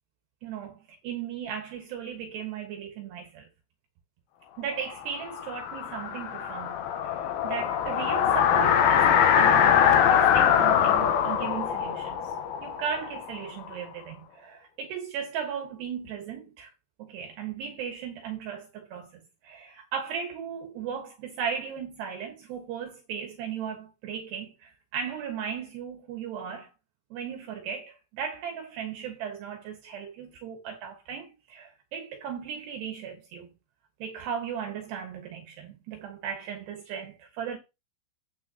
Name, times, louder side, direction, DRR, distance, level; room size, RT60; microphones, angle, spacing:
voice 1, 0.4-3.5 4.6-12.3 12.6-16.7 17.0-26.7 27.1-33.5 34.0-37.6, right 7 dB, 70° right, 3.3 m, -36 dB
sound 1, 5.0-13.7, left 8 dB, 70° left, 2.4 m, -23 dB
9.8 x 9.3 x 2.9 m
omnidirectional pair, 5.3 m